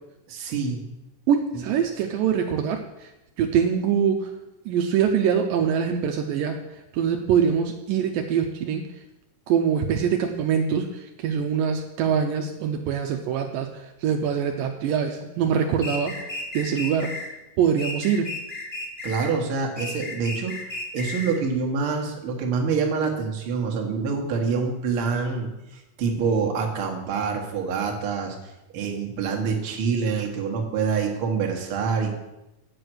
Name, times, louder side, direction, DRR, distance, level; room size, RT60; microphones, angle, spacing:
voice 1, 0.3-0.8 1.5-1.6 19.0-20.5 20.9-28.4 28.7-32.2, right 5 dB, 50° right, 1 dB, 1.9 m, -26 dB
voice 2, 1.3-3.1 3.4-4.3 4.7-6.6 6.9-8.8 9.5-16.2 16.5-17.1 17.6-18.3, right 7 dB, 75° right, 4 dB, 2.3 m, -24 dB
sound 1, 15.8-17.3 17.8-19.3 19.8-21.4, left 2 dB, 40° left, 0.6 m, -34 dB
8.4 x 7.8 x 6.2 m, 0.93 s
omnidirectional pair, 4.2 m